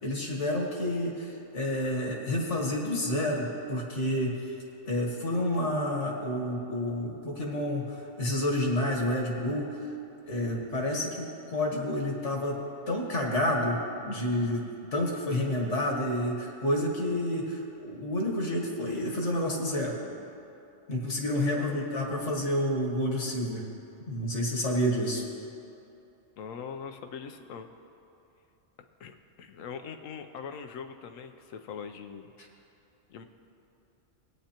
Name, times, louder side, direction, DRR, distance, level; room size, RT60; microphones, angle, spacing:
voice 1, 0.0-4.3 4.8-9.8 10.3-12.6 12.9-20.0 20.9-23.6 24.1-25.2, left 1 dB, 65° left, 0 dB, 1.7 m, -29 dB
voice 2, 21.5-22.0 26.4-27.7 29.0-32.3 33.1-33.2, left 6 dB, 90° left, 7 dB, 1.1 m, -42 dB
17.0 x 9.1 x 2.9 m, 2.7 s
omnidirectional pair, 1.3 m